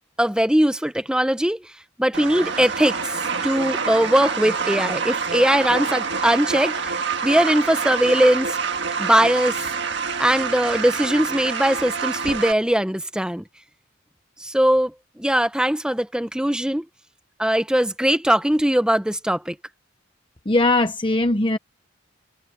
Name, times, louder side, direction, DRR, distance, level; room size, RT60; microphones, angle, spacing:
voice 1, 0.2-1.7 2.0-8.6 9.0-9.6 10.2-13.4 14.4-16.8 17.4-19.6, equal, 5° right, 0.7 m, -20 dB
sound 1, 2.1-12.5, right 5 dB, 55° right, 1.7 m, -27 dB
voice 2, 20.5-21.6, left 2 dB, 25° left, 0.9 m, -19 dB
head